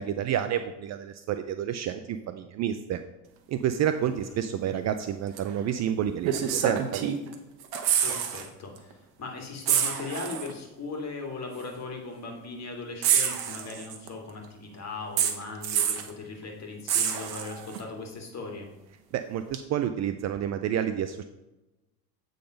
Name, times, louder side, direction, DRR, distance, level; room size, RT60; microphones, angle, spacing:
voice 1, 0.0-3.0 3.5-7.1 19.1-21.2, right 10 dB, 35° right, 10 dB, 0.5 m, -29 dB
voice 2, 4.0-4.5 8.0-18.7, left 3 dB, 35° left, 2 dB, 2.3 m, -39 dB
sound 1, 5.4-5.5 6.2-7.3 7.6-8.5 8.8-8.9 9.7-10.5 11.6-11.7 13.0-14.1 15.2-16.1 16.9-17.8 19.5-19.6, right 9 dB, 50° right, 1.2 m, -27 dB
8.5 x 4.0 x 5.1 m, 1.0 s
hypercardioid pair, 85°, 46 cm